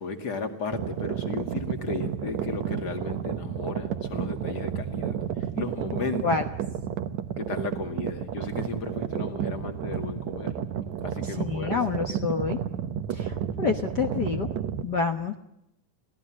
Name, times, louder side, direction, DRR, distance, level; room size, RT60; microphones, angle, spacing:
voice 1, 0.0-6.3 7.4-10.5 11.0-11.8, left 4 dB, 35° left, 6 dB, 2.4 m, -35 dB
sound 1, 0.7-14.8, right 9 dB, 70° right, 2.3 m, -31 dB
voice 2, 11.2-12.6 13.1-14.5 14.8-15.4, left 5 dB, 55° left, 6 dB, 1.2 m, -28 dB
24.5 x 17.5 x 7.4 m, 0.81 s
omnidirectional pair, 3.4 m